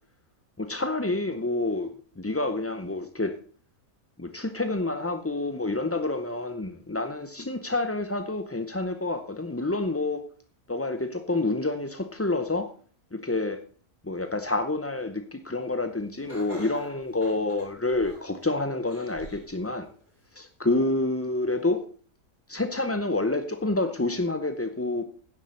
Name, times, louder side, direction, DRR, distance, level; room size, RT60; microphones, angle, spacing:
voice 1, 0.7-3.3 4.2-10.2 10.7-12.7 13.1-13.6 14.0-19.9 20.3-21.8 22.5-25.0, left 2 dB, 20° left, 8 dB, 0.3 m, -28 dB
Laughter, 16.3-18.4 18.9-19.5 20.0-20.1 21.1-21.2, left 1 dB, 35° right, 6.2 m, -44 dB
10.0 x 7.2 x 6.4 m, 0.43 s
omnidirectional pair, 1.5 m